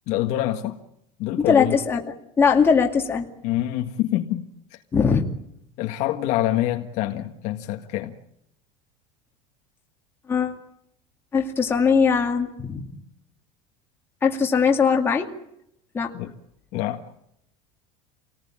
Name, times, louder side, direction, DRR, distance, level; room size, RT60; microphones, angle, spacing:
voice 1, 0.1-0.8 1.2-1.8 3.4-4.8 5.8-8.2 16.1-16.3 16.7-17.0, left 14 dB, 45° left, 4 dB, 1.7 m, -26 dB
voice 2, 1.4-2.0 2.4-3.3 4.9-5.3 10.3-10.6 11.3-12.8 14.2-15.3 15.9-16.1, left 6 dB, 15° left, 1 dB, 2.3 m, -20 dB
27.5 x 19.0 x 8.9 m, 0.78 s
cardioid pair, 170°, 17 cm